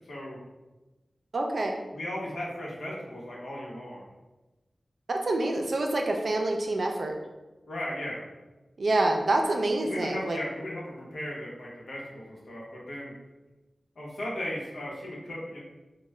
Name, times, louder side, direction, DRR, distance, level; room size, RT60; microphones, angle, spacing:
voice 1, 0.1-0.4 1.9-4.0 7.7-8.2 9.8-13.1 14.0-15.6, left 1 dB, 85° left, -4 dB, 0.9 m, -36 dB
voice 2, 1.3-1.8 5.1-7.2 8.8-10.4, right 2 dB, 65° right, 2 dB, 0.4 m, -27 dB
3.5 x 2.2 x 3.1 m, 1.1 s
wide cardioid pair, 85°, 0 cm